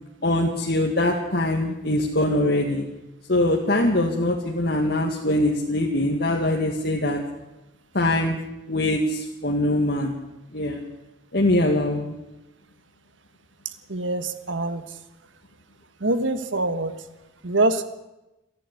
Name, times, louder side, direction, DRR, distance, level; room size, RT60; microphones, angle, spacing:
voice 1, 0.2-2.9 3.3-7.2 7.9-8.4 8.7-10.2 10.5-10.8 11.3-12.2, left 1 dB, 55° left, 0 dB, 2.1 m, -22 dB
voice 2, 13.9-14.8 16.0-16.9 17.4-17.8, right 2 dB, 80° right, 11 dB, 1.5 m, -24 dB
28.5 x 11.5 x 8.5 m, 0.99 s
head